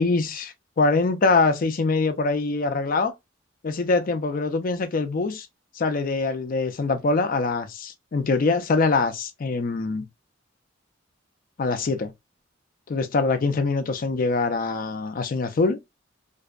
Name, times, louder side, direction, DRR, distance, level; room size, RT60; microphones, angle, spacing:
voice 1, 0.0-3.1 3.6-5.5 5.8-10.0 11.6-12.1 12.9-15.8, left 3 dB, 45° left, 0.4 m, -23 dB
2.6 x 2.1 x 2.3 m
head